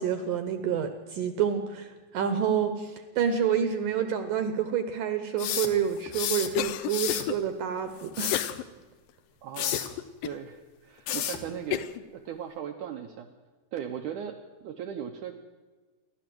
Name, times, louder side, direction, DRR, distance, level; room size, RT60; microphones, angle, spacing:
voice 1, 0.0-8.4, right 8 dB, 75° right, 9 dB, 2.0 m, -28 dB
sound 1, 5.4-6.5 6.9-7.3 8.0-8.5 9.6-9.9 11.1-11.4, left 10 dB, 70° left, 3.4 m, -31 dB
Cough, 6.6-7.4 8.3-8.6 9.1-9.2 9.7-10.4 11.0-11.1 11.7-12.0, left 13 dB, 90° left, 2.0 m, -31 dB
voice 2, 9.4-11.9 12.1-13.3 13.7-15.3, right 9 dB, 90° right, 5 dB, 1.7 m, -38 dB
28.0 x 12.0 x 7.8 m, 1.4 s
omnidirectional pair, 5.0 m